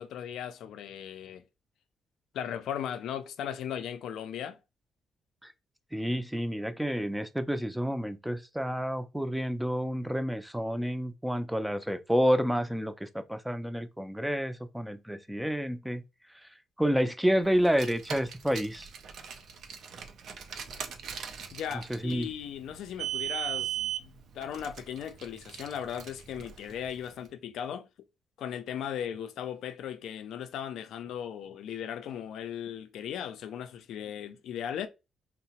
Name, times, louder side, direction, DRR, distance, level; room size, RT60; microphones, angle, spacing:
voice 1, 0.0-1.4 2.3-4.6 21.5-27.9 28.4-34.9, left 9 dB, 80° left, 0.4 m, -37 dB
voice 2, 5.9-16.0 16.8-18.9 21.9-22.3, equal, 5° right, 0.4 m, -29 dB
Car, 17.6-27.1, right 10 dB, 70° right, 0.4 m, -39 dB
2.8 x 2.0 x 2.8 m
cardioid pair, 90°, 0 cm